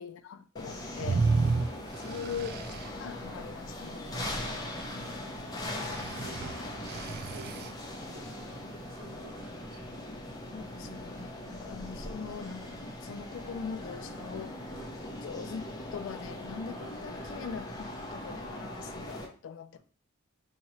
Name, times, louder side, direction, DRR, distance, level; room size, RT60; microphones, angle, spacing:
voice 1, 0.0-1.3 2.0-4.3 4.9-5.3 10.5-14.6 15.1-19.8, left 6 dB, 60° left, 0.3 m, -42 dB
sound 1, 0.6-19.3, left 1 dB, 20° left, 0.6 m, -40 dB
sound 2, 1.0-2.9 5.7-7.7, right 4 dB, 45° right, 0.3 m, -31 dB
voice 2, 1.3-1.9 4.2-8.4 8.9-10.0 14.7-15.0 16.7-16.9, right 1 dB, 70° right, 1.6 m, -52 dB
2.9 x 2.8 x 4.3 m
head